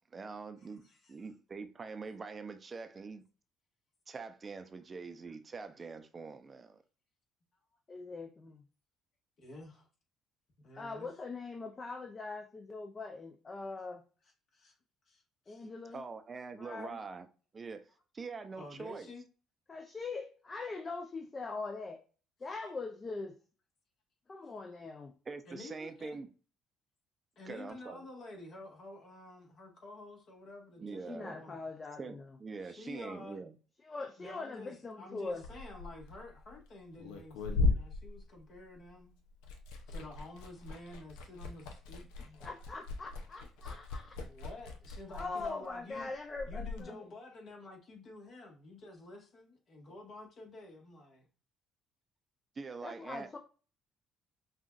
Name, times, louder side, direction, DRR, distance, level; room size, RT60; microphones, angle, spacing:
voice 1, 0.1-0.8 1.1-3.2 4.1-6.8 15.9-17.3 17.5-17.9 18.1-19.1 25.3-26.3 27.5-28.1 30.8-31.4 32.0-33.5 52.6-53.4, right 4 dB, 35° right, 0.6 m, -44 dB
voice 2, 0.8-1.3 9.4-9.9 10.6-11.1 14.5-14.7 15.1-15.7 18.6-19.2 25.5-26.2 27.3-31.6 32.6-33.4 34.2-39.1 39.9-42.5 44.2-46.1 46.5-51.2, left 2 dB, 55° left, 1.5 m, -50 dB
voice 3, 7.9-8.6 10.8-14.0 15.5-16.0 16.5-17.0 19.7-22.0 22.4-23.4 24.3-25.1 30.9-32.4 33.8-35.4 42.4-44.2 45.1-47.1 52.8-53.4, left 3 dB, 35° left, 0.6 m, -42 dB
Liquid, 35.3-39.0 39.3-46.8, left 3 dB, 85° left, 0.7 m, -38 dB
5.7 x 2.4 x 2.5 m
supercardioid pair, 65°, 0 cm